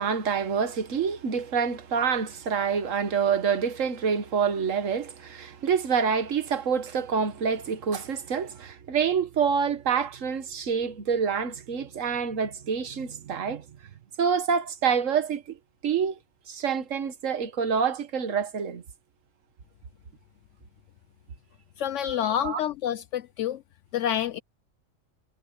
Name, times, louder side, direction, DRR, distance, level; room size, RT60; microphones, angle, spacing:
voice 1, 0.0-13.7 14.2-15.6 15.8-16.2 16.5-18.8 22.1-22.6, right 6 dB, 75° right, 1.6 m, -27 dB
voice 2, 21.8-23.6 23.9-24.4, left 10 dB, 70° left, 0.9 m, -28 dB
omnidirectional pair, 1.3 m